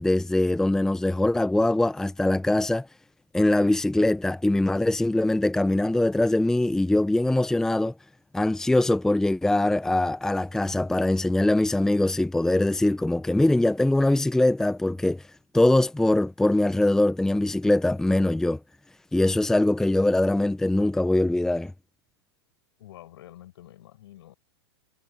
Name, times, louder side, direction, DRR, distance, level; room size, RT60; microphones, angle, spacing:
voice 1, 0.0-2.9 3.3-7.9 8.3-15.2 15.5-18.6 19.1-21.7, left 1 dB, 5° left, 0.8 m, -22 dB
voice 2, 22.8-24.3, left 13 dB, 70° left, 7.3 m, -48 dB
hypercardioid pair, 115°, 14 cm